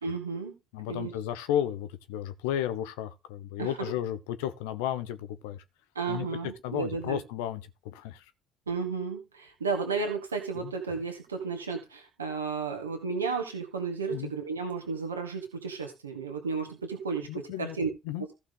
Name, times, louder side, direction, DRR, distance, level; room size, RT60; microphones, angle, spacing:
voice 1, 0.0-0.5 0.9-1.1 3.6-3.7 6.0-7.2 8.7-17.9 18.2-18.3, right 4 dB, 90° right, 1.8 m, -33 dB
voice 2, 0.7-5.6 6.1-6.3 6.6-8.2 10.6-10.7 14.1-14.3 17.3-17.8 18.0-18.3, left 11 dB, 75° left, 1.0 m, -33 dB
15.0 x 5.8 x 3.9 m
hypercardioid pair, 50°, 0 cm